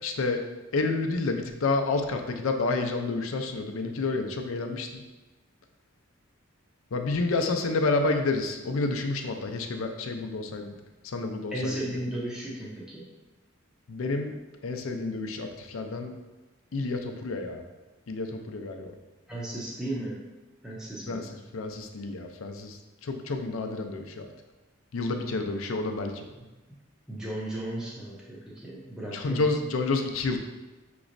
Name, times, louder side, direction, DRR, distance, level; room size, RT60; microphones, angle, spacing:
voice 1, 0.0-0.4 0.7-5.0 6.9-10.7 11.0-11.8 13.9-14.4 14.6-16.1 16.7-17.6 18.1-18.9 21.1-21.2 21.5-22.8 23.0-24.3 24.9-26.3 29.1-30.4, left 3 dB, 75° left, 5 dB, 0.5 m, -29 dB
voice 2, 11.5-13.1 19.3-20.2 20.6-21.4 26.4-26.5 27.1-29.4, right 1 dB, 5° right, -6 dB, 0.6 m, -35 dB
5.9 x 3.0 x 2.6 m, 1.2 s
head